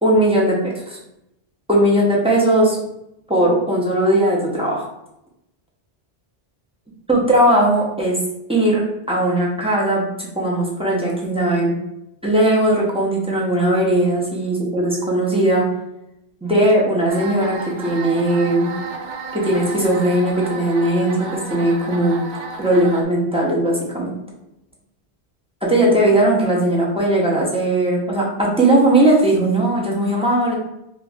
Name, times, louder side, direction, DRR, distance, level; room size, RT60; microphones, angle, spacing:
voice 1, 0.0-1.0 1.7-2.8 3.3-4.9 7.1-8.2 8.5-11.7 12.2-15.6 16.4-17.6 17.8-18.7 19.3-22.2 22.6-24.1 25.6-30.5, right 1 dB, 5° right, -4 dB, 0.6 m, -18 dB
sound 1, 17.1-23.0, right 4 dB, 55° right, 0.6 m, -32 dB
3.0 x 2.4 x 3.5 m, 0.85 s
omnidirectional pair, 1.1 m